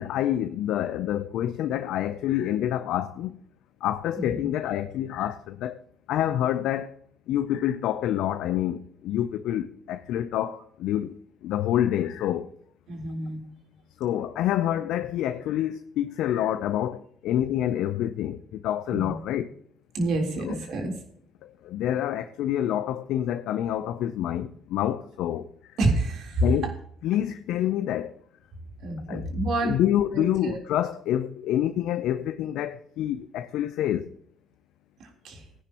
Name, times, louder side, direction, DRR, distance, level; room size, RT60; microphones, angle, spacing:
voice 1, 0.0-3.4 3.8-5.8 6.1-7.0 7.3-11.1 11.4-12.5 14.0-19.5 20.4-20.6 21.4-25.8 26.4-26.7 27.0-28.1 29.1-29.3 29.6-34.1, left 11 dB, 75° left, 0.6 m, -27 dB
voice 2, 4.2-4.5 12.9-13.4 18.9-19.2 19.9-20.9 25.8-26.7 28.8-29.9 30.1-30.6 35.0-35.4, right 2 dB, 70° right, 3.6 m, -28 dB
18.0 x 10.0 x 3.0 m
supercardioid pair, 75°, 0 cm